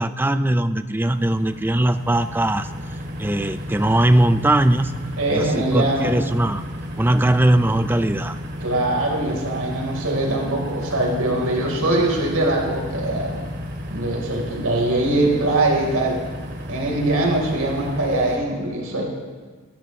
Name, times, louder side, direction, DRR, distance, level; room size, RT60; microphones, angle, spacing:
voice 1, 0.0-2.7 3.2-5.0 5.3-6.6 7.0-8.4, right 1 dB, 10° right, 10 dB, 0.5 m, -20 dB
sound 1, 1.0-18.4, equal, 50° right, 2.3 m, -33 dB
voice 2, 5.2-6.1 8.6-13.4 13.9-16.2 16.7-19.0, right 2 dB, 85° right, -1 dB, 4.2 m, -22 dB
26.5 x 13.5 x 3.2 m, 1.5 s
head